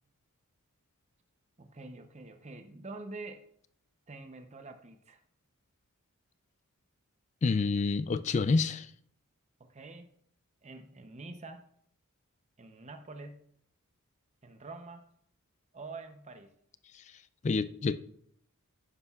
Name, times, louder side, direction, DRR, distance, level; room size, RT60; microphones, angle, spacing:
voice 1, 1.6-3.4 4.1-5.2 9.6-10.1 10.6-11.6 12.6-13.4 14.4-15.1 15.7-16.5, right 3 dB, 30° right, 0.7 m, -46 dB
voice 2, 7.4-8.9 16.9-17.1 17.4-18.0, left 4 dB, 30° left, 0.3 m, -28 dB
11.5 x 9.7 x 2.4 m
head